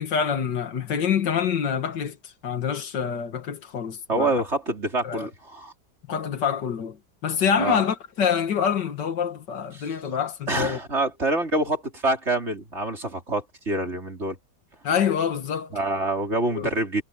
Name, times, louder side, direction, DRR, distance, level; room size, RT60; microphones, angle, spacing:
voice 1, 0.0-2.2 2.4-4.3 5.0-5.3 6.1-7.0 7.2-10.8 14.8-15.7 16.5-16.7, left 7 dB, 75° left, 2.3 m, -26 dB
voice 2, 4.1-5.7 7.5-7.8 9.7-10.0 10.5-14.4 15.7-17.0, right 2 dB, 40° right, 4.4 m, -26 dB
omnidirectional pair, 1.9 m